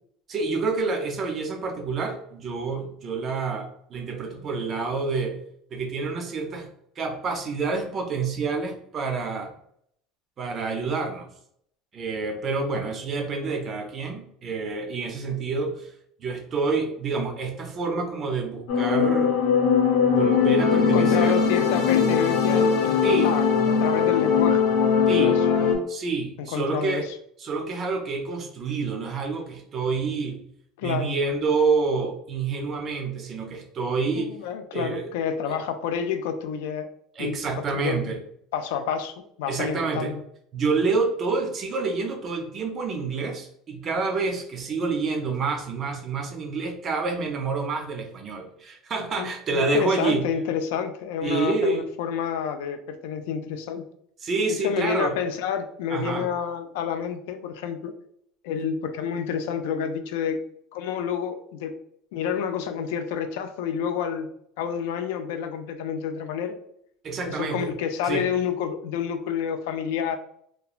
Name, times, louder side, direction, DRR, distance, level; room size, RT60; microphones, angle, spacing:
voice 1, 0.3-5.4 5.7-6.7 7.0-9.5 10.4-11.3 11.9-15.9 16.2-19.4 20.1-21.4 23.0-23.3 25.1-25.4 25.9-27.1 27.4-30.4 30.8-34.4 34.7-35.1 35.5-35.6 37.2-38.2 39.5-40.1 40.5-50.3 51.2-51.8 54.2-55.2 55.9-56.3 67.0-67.7 68.0-68.3, right 4 dB, 25° right, 4 dB, 0.4 m, -28 dB
sound 1, 18.7-25.7, left 6 dB, 75° left, 0.7 m, -20 dB
voice 2, 20.8-24.6 25.1-25.3 26.4-27.0 30.8-31.1 34.1-36.9 37.2-37.4 37.7-38.1 38.5-40.2 49.2-53.8 54.5-57.9 58.4-60.4 60.7-61.7 62.1-64.3 64.6-66.6 67.3-70.2, left 7 dB, 90° left, 8 dB, 0.3 m, -29 dB
2.9 x 2.2 x 2.3 m, 0.69 s
cardioid pair, 180°, 0 cm